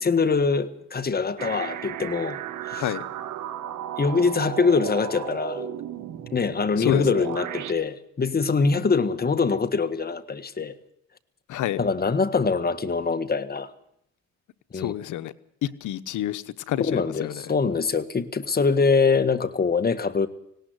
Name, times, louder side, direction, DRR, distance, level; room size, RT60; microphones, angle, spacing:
voice 1, 0.0-2.9 4.0-5.7 6.3-10.7 11.7-13.7 14.7-14.9 16.8-20.3, left 4 dB, 30° left, 1.6 m, -24 dB
sound 1, 1.4-7.7, right 10 dB, 80° right, 1.9 m, -34 dB
voice 2, 2.7-3.1 6.8-7.3 11.5-11.8 14.7-15.3 15.8-17.3, left 13 dB, 80° left, 1.1 m, -29 dB
18.5 x 18.0 x 8.0 m
cardioid pair, 90°, 30 cm